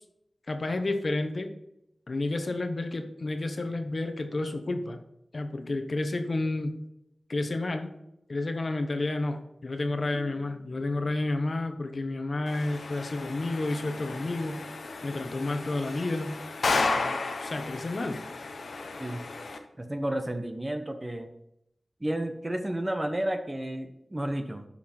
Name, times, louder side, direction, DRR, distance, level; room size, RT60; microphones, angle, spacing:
voice 1, 0.5-1.5 2.1-5.0 5.3-6.8 7.3-7.9 8.3-14.6 15.0-16.4 16.9-18.2, left 2 dB, 55° left, 7 dB, 1.1 m, -31 dB
sound 1, 12.5-19.6, left 3 dB, 85° left, 1.0 m, -33 dB
voice 2, 19.8-21.3 22.0-24.7, right 1 dB, 20° right, 7 dB, 1.0 m, -31 dB
11.0 x 5.9 x 4.5 m, 0.83 s
wide cardioid pair, 85°, 0 cm